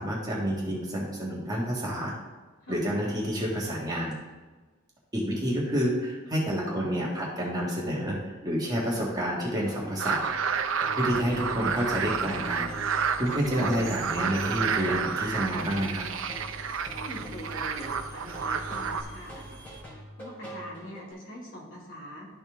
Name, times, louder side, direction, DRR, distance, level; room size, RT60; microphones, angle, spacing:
voice 1, 0.0-2.1 2.7-4.2 5.1-10.3 10.9-12.7 13.2-16.0, equal, 20° right, -4 dB, 1.5 m, -29 dB
sound 1, 9.6-21.1, left 1 dB, 10° left, 2.7 m, -44 dB
sound 2, 10.0-19.0, right 6 dB, 75° right, 0.5 m, -30 dB
Engine, 11.1-19.8, right 2 dB, 45° right, 1.1 m, -48 dB
voice 2, 17.0-19.6 20.2-22.3, equal, 70° left, -5 dB, 2.4 m, -43 dB
12.5 x 4.2 x 3.5 m, 1.3 s
head